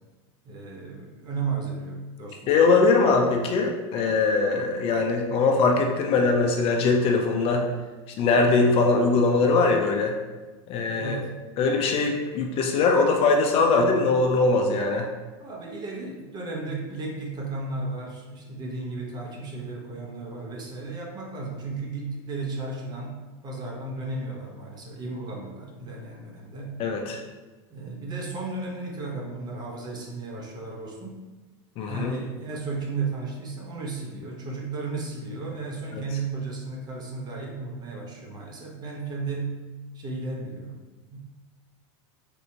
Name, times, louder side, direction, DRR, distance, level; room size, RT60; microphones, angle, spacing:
voice 1, 0.4-2.5 11.0-11.3 15.4-26.8 27.7-31.2 31.8-39.5 39.9-40.8 41.1-41.2, right 3 dB, 30° right, -1 dB, 0.7 m, -34 dB
voice 2, 2.5-7.7 8.2-10.2 10.7-11.2 11.6-15.1 26.8-27.2 31.8-32.1, left 3 dB, 40° left, 2 dB, 0.4 m, -21 dB
3.4 x 2.7 x 2.7 m, 1.2 s
supercardioid pair, 120°, 15 cm